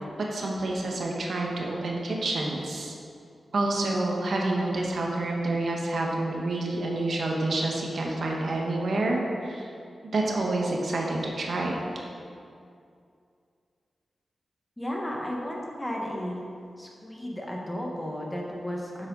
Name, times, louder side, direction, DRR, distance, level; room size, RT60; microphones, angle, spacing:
voice 1, 0.3-2.9 3.5-9.7 10.1-11.8, right 2 dB, 70° right, -1 dB, 1.5 m, -28 dB
voice 2, 14.8-16.4 16.8-19.1, left 1 dB, 15° left, -2 dB, 1.7 m, -34 dB
9.9 x 7.5 x 4.1 m, 2.4 s
wide cardioid pair, 80°, 0 cm